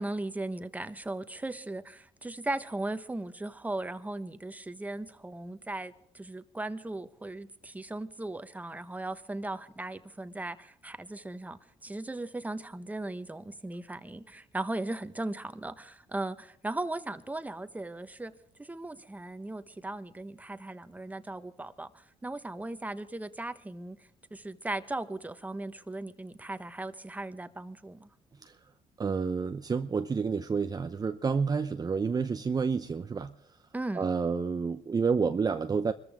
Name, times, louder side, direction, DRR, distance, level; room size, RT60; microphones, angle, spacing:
voice 1, 0.0-18.3 18.6-24.0 24.3-28.1 33.7-34.1, right 2 dB, 10° right, 1.2 m, -37 dB
voice 2, 29.0-33.3 33.9-35.9, right 5 dB, 30° right, 0.7 m, -29 dB
23.5 x 14.0 x 3.6 m
cardioid pair, 90°, 13 cm